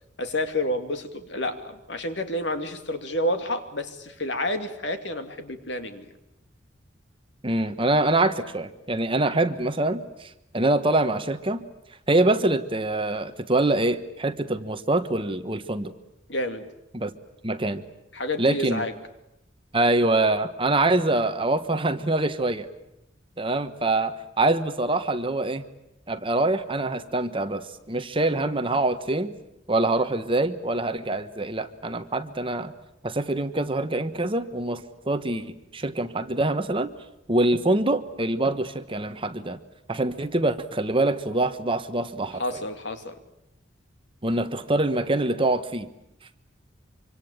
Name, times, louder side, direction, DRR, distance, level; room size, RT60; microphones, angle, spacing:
voice 1, 0.2-6.1 16.3-16.7 18.1-18.9 42.4-43.1, left 1 dB, 65° left, 7 dB, 2.8 m, -29 dB
voice 2, 7.4-11.6 12.1-15.9 16.9-17.1 17.4-17.8 18.4-18.9 19.7-22.7 23.4-25.6 26.1-29.3 29.7-32.7 33.0-36.9 37.3-39.6 39.9-42.6 44.2-45.9, right 2 dB, 30° right, 10 dB, 1.3 m, -25 dB
26.0 x 25.5 x 8.9 m, 0.82 s
head